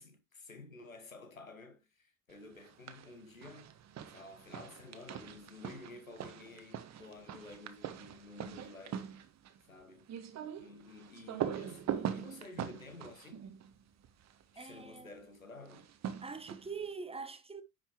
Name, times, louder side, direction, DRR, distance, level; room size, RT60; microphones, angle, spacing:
voice 1, 0.0-3.7 4.1-9.1 9.7-10.1 10.6-13.4 14.5-15.9, left 3 dB, 85° left, 1.3 m, -52 dB
sound 1, 2.6-3.1 3.4-14.4 15.6-16.9, right 9 dB, 40° right, 1.3 m, -42 dB
voice 2, 14.6-15.1 16.2-17.6, right 5 dB, 15° right, 1.2 m, -43 dB
10.0 x 5.7 x 3.0 m
figure-of-eight pair, 50°, 39 cm